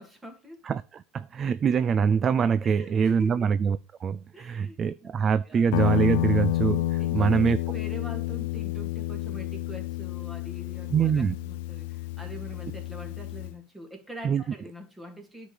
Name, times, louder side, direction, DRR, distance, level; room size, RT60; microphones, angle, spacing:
voice 1, 0.0-0.6 2.6-3.5 4.3-4.9 5.5-5.7 7.0-15.5, right 1 dB, 10° right, 2.6 m, -44 dB
voice 2, 0.6-7.6 10.9-11.4 14.2-14.4, right 6 dB, 25° right, 0.4 m, -24 dB
Guitar, 5.7-13.6, left 16 dB, 70° left, 0.5 m, -30 dB
10.0 x 5.2 x 8.2 m
supercardioid pair, 140°, 0 cm